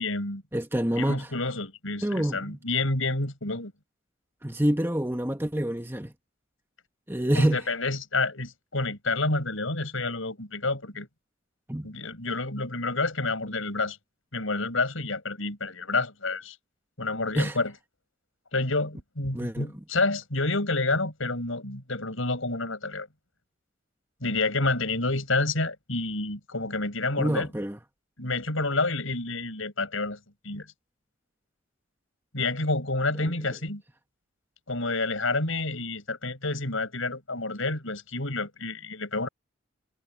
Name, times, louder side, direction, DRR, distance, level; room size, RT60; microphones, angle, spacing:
voice 1, 0.0-0.4 1.0-3.7 7.3-11.1 11.8-14.0 14.3-16.6 17.0-17.7 18.5-23.1 24.2-27.5 28.2-30.2 30.4-30.7 32.3-33.8 34.7-39.3, left 3 dB, 80° left, 6.2 m, -29 dB
voice 2, 0.5-1.3 2.0-2.6 4.4-6.1 7.1-7.6 11.7-11.9 17.3-17.6 19.3-19.8 27.2-27.8 33.2-33.3, right 1 dB, 10° right, 1.4 m, -27 dB
head